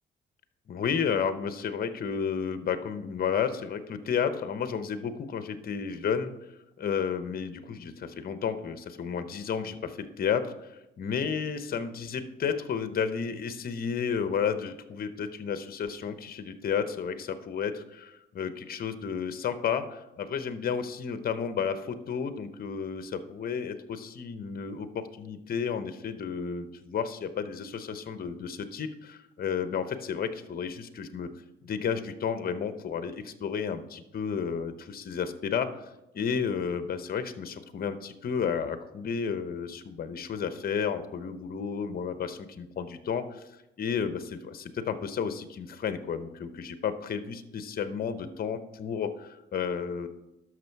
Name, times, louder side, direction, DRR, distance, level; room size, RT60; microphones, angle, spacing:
voice 1, 0.7-6.3 6.8-31.3 31.6-35.7 36.1-43.5 43.8-50.1, left 7 dB, 50° left, 11 dB, 0.9 m, -32 dB
11.0 x 6.5 x 4.6 m, 0.94 s
cardioid pair, 90°, 20 cm